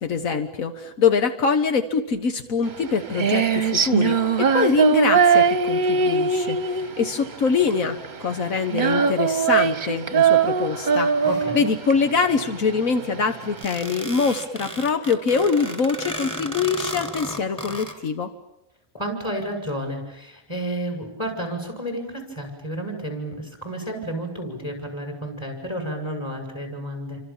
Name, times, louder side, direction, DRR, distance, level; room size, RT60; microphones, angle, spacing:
voice 1, 0.0-11.1 11.5-18.3, left 5 dB, 85° left, 7 dB, 1.7 m, -24 dB
Female singing, 2.7-13.6, right 6 dB, 40° right, 1.2 m, -21 dB
voice 2, 11.2-11.7 18.9-27.2, right 1 dB, 20° left, 2 dB, 7.0 m, -31 dB
sound 1, 13.6-17.9, equal, 5° left, 3.2 m, -34 dB
28.5 x 25.5 x 7.3 m, 0.86 s
omnidirectional pair, 1.4 m